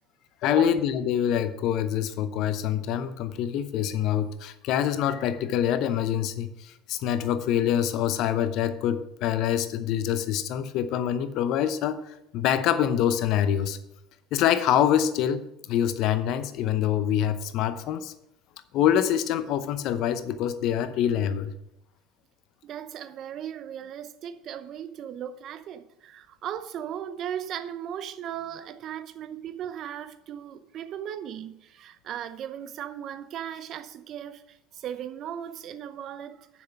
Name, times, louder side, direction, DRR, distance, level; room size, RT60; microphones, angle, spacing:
voice 1, 0.4-13.8 14.3-15.4 15.7-18.1 18.7-21.5, left 10 dB, 60° left, 0.7 m, -25 dB
voice 2, 22.6-36.6, right 9 dB, 50° right, 0.7 m, -37 dB
7.2 x 6.1 x 5.9 m
hypercardioid pair, 75°, 0 cm